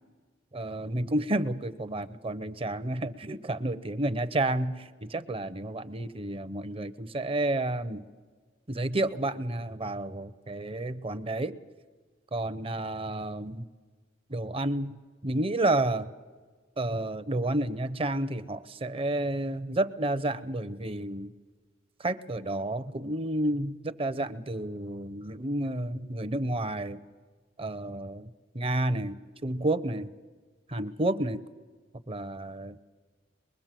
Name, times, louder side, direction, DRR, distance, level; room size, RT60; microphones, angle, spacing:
voice 1, 0.5-8.1 8.7-11.5 12.3-13.7 14.3-14.9 15.2-16.1 16.8-21.3 22.0-27.0 27.6-30.1 30.7-31.4 32.1-32.8, right 1 dB, 30° right, 14 dB, 0.8 m, -30 dB
24.0 x 22.0 x 7.6 m, 1.4 s
head